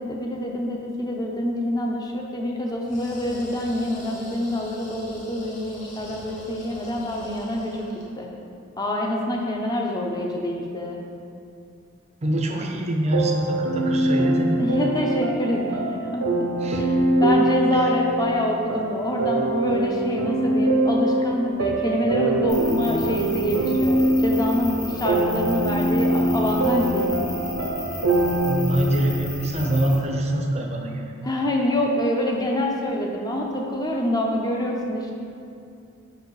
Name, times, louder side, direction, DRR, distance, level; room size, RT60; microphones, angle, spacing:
voice 1, 0.0-7.8 8.2-8.3 8.8-11.0 14.6-16.5 16.8-16.9 17.2-24.0 24.2-27.1 31.2-35.1, left 1 dB, 15° left, -1 dB, 0.6 m, -26 dB
sound 1, 2.8-8.2, left 1 dB, 35° left, 1.1 m, -44 dB
voice 2, 12.2-14.5 16.6-16.8 17.7-17.9 28.4-31.1, right 1 dB, 30° right, 1 dB, 0.5 m, -25 dB
sound 2, 13.1-28.6, right 1 dB, 75° right, 0.7 m, -23 dB
sound 3, 22.5-30.0, left 2 dB, 70° left, 1.4 m, -35 dB
4.8 x 4.8 x 4.8 m, 2.5 s
head